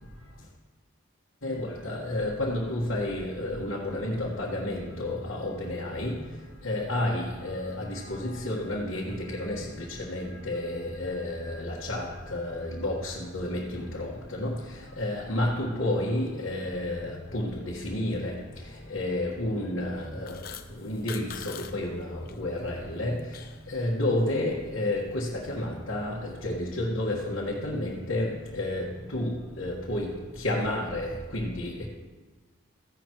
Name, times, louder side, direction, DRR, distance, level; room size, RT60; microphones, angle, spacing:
voice 1, 1.4-6.1 6.6-9.6 10.1-12.0 12.3-14.5 15.0-18.3 18.9-20.3 20.8-22.0 22.4-23.1 23.7-26.1 26.4-28.3 28.6-28.9 29.1-30.1 30.4-31.9, left 1 dB, 90° left, -5 dB, 1.5 m, -30 dB
sound 1, 20.0-21.7 22.0-22.3 22.8-23.7, left 8 dB, 45° left, 0.6 m, -43 dB
15.0 x 10.5 x 3.1 m, 1.3 s
head